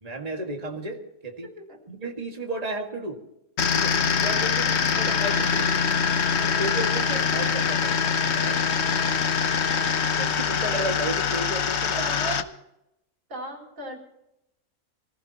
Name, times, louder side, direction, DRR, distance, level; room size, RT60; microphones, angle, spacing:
voice 1, 0.0-1.5 1.9-3.2 3.7-5.7 6.3-8.8 10.2-12.0, right 2 dB, 25° right, 1 dB, 2.0 m, -33 dB
sound 1, 3.6-12.4, left 6 dB, 55° left, 1.1 m, -24 dB
voice 2, 12.0-12.5 13.3-14.0, right 2 dB, 60° right, -2 dB, 4.6 m, -35 dB
25.5 x 15.5 x 2.9 m, 0.87 s
omnidirectional pair, 1.5 m